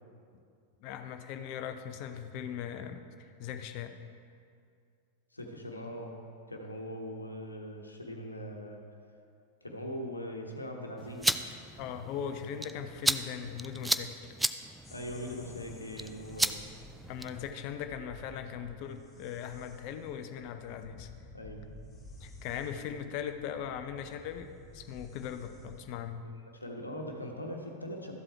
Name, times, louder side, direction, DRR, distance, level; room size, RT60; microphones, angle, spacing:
voice 1, 0.8-4.0 11.8-14.3 17.1-21.1 22.2-26.2, left 8 dB, 45° left, 8 dB, 0.7 m, -39 dB
voice 2, 5.3-6.2 6.5-8.8 9.6-11.4 14.9-16.6 21.3-21.7 26.2-28.1, equal, 80° left, 2 dB, 1.2 m, -41 dB
sound 1, 11.0-17.5, right 1 dB, 5° right, 0.4 m, -35 dB
sound 2, 14.8-25.9, left 2 dB, 20° left, 1.9 m, -53 dB
13.5 x 7.7 x 4.6 m, 2.3 s
figure-of-eight pair, 90°, 0 cm